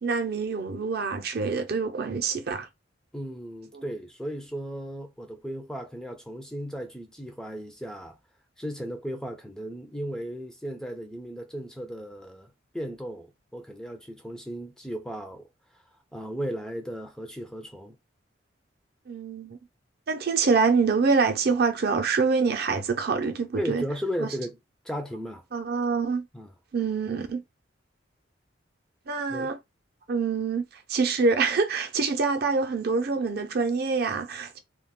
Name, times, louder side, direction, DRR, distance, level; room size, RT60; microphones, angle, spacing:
voice 1, 0.0-2.7 3.7-3.8 19.1-19.6 20.1-23.8 24.2-24.3 25.5-26.2 26.7-27.4 29.1-29.6 30.1-34.6, right 4 dB, 55° right, 0.5 m, -25 dB
voice 2, 3.1-8.2 8.6-13.3 13.5-15.5 16.1-18.0 23.6-24.6 24.8-25.4 26.3-26.5 29.3-29.6, equal, 5° left, 0.3 m, -35 dB
2.3 x 2.2 x 3.5 m
head